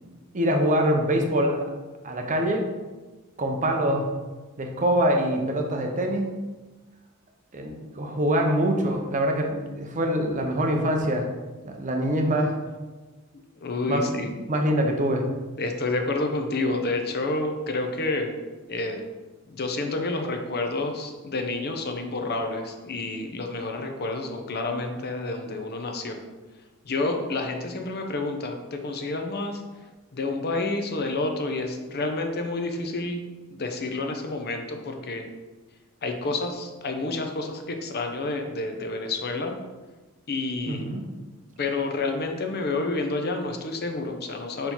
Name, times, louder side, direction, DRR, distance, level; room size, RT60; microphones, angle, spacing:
voice 1, 0.3-1.7 2.0-2.7 3.4-4.1 4.6-6.3 7.5-11.3 11.6-12.6 13.9-15.3 40.7-41.0, equal, 35° right, 3 dB, 0.7 m, -24 dB
voice 2, 13.6-14.3 15.6-18.3 18.7-19.0 19.5-26.2 26.9-29.6 30.1-33.2 33.5-35.2 36.0-39.6 40.3-40.9 41.6-44.7, left 2 dB, 50° left, 4 dB, 0.7 m, -29 dB
5.3 x 4.4 x 4.4 m, 1.2 s
head